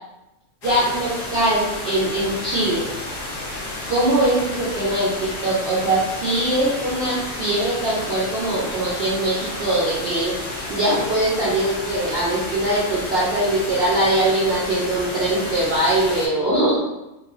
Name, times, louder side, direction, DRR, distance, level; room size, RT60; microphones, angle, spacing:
sound 1, 0.6-16.3, left 2 dB, 60° left, 0.6 m, -31 dB
voice 1, 0.6-2.8 3.9-10.4 10.7-16.8, right 1 dB, 60° right, -7 dB, 0.7 m, -21 dB
2.6 x 2.4 x 2.4 m, 0.96 s
omnidirectional pair, 1.5 m